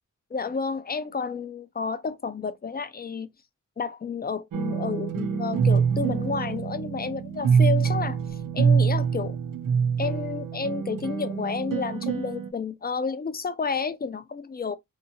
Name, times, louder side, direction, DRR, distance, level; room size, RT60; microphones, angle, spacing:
voice 1, 0.3-3.3 3.8-9.4 10.0-14.8, left 5 dB, 30° left, 0.4 m, -31 dB
sound 1, 4.5-12.5, right 6 dB, 90° right, 0.5 m, -25 dB
2.8 x 2.3 x 2.5 m
wide cardioid pair, 85°, 32 cm